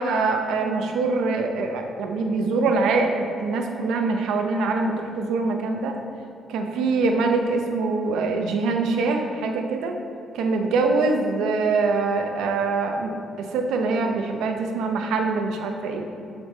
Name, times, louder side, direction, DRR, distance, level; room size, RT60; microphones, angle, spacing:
voice 1, 0.0-5.9 6.5-10.0 10.3-13.1 13.5-16.0, right 3 dB, 85° right, 4 dB, 0.7 m, -24 dB
8.0 x 3.6 x 4.1 m, 2.6 s
cardioid pair, 90°, 0 cm